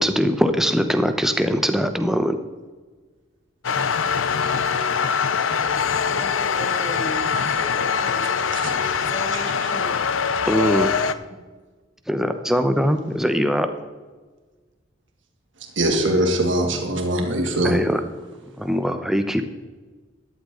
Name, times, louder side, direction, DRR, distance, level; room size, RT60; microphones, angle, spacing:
voice 1, 0.0-2.4 10.5-11.0 12.1-13.7 17.6-18.0 18.6-19.4, equal, ahead, 7 dB, 0.9 m, -21 dB
sound 1, 3.6-11.1, left 6 dB, 75° left, 0.6 m, -23 dB
voice 2, 6.1-8.3 9.1-10.0 11.3-11.4 16.1-16.3, left 1 dB, 35° left, 3 dB, 2.1 m, -35 dB
voice 3, 15.8-17.8, right 1 dB, 65° right, 2 dB, 2.6 m, -22 dB
13.5 x 11.5 x 3.9 m, 1.4 s
head